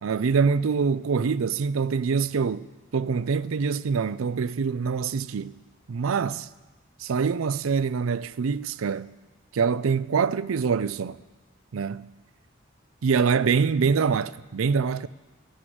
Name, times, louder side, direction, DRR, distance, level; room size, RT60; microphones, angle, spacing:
voice 1, 0.0-2.7 2.9-5.6 5.9-6.5 7.0-9.1 9.5-11.2 11.7-12.1 13.0-15.1, right 5 dB, 85° right, 0.4 m, -25 dB
13.5 x 9.3 x 7.9 m
head